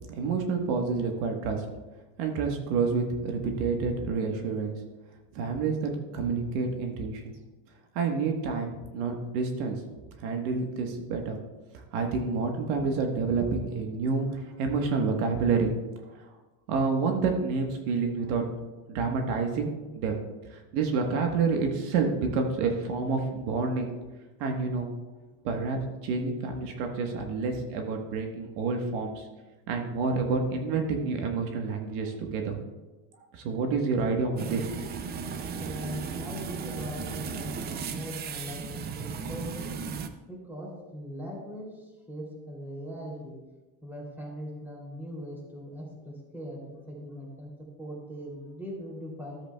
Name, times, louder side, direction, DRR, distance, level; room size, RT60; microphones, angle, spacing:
voice 1, 0.0-1.6 2.2-4.8 5.3-7.3 7.9-9.8 10.2-11.4 11.9-15.7 16.7-18.4 18.9-20.2 20.5-23.9 24.4-24.9 25.4-29.3 29.7-32.6 33.3-34.7, right 4 dB, 75° right, 3 dB, 1.4 m, -28 dB
sound 1, 34.4-40.1, right 5 dB, 25° right, 0.3 m, -36 dB
voice 2, 35.6-39.8 40.3-43.4 43.8-47.5 47.8-49.4, equal, 5° right, -2 dB, 2.8 m, -40 dB
14.0 x 8.0 x 2.3 m, 1.2 s
supercardioid pair, 140°, 44 cm